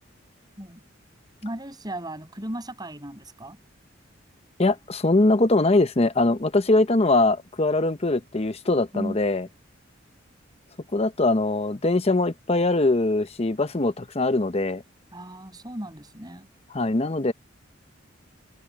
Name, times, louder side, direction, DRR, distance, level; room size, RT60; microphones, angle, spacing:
voice 1, 1.4-3.6 8.9-9.2 15.1-16.5, right 1 dB, 20° right, 7.4 m, -35 dB
voice 2, 4.6-9.5 10.9-14.8 16.7-17.3, left 2 dB, 30° left, 0.8 m, -22 dB
head